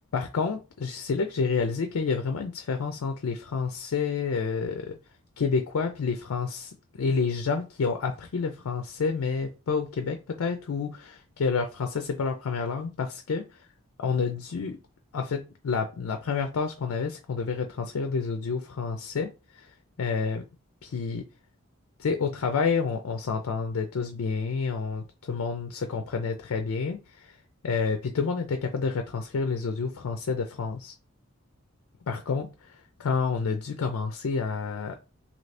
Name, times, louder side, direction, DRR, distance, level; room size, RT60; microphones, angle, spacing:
voice 1, 0.1-5.0 5.4-13.4 14.0-14.8 15.1-19.7 20.0-20.4 20.8-21.3 22.0-27.4 27.6-30.9 32.1-35.0, left 5 dB, 80° left, 0.4 m, -29 dB
2.7 x 2.6 x 3.3 m
head